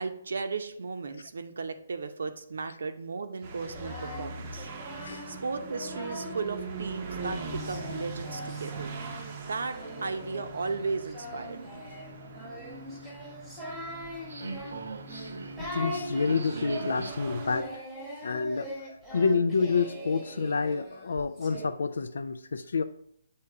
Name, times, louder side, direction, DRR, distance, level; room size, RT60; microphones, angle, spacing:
voice 1, 0.0-4.7 5.3-8.9 9.5-11.8, right 4 dB, 70° right, 8 dB, 0.7 m, -35 dB
sound 1, 3.4-17.6, right 3 dB, 25° right, 0.6 m, -42 dB
Singing, 3.6-6.6 7.2-21.7, equal, ahead, 1.1 m, -41 dB
sound 2, 10.1-17.1, right 3 dB, 90° right, 1.0 m, -44 dB
voice 2, 15.6-17.8 18.2-22.8, left 4 dB, 85° left, 10 dB, 0.3 m, -29 dB
7.6 x 2.8 x 4.7 m, 0.70 s
hypercardioid pair, 175°, 0 cm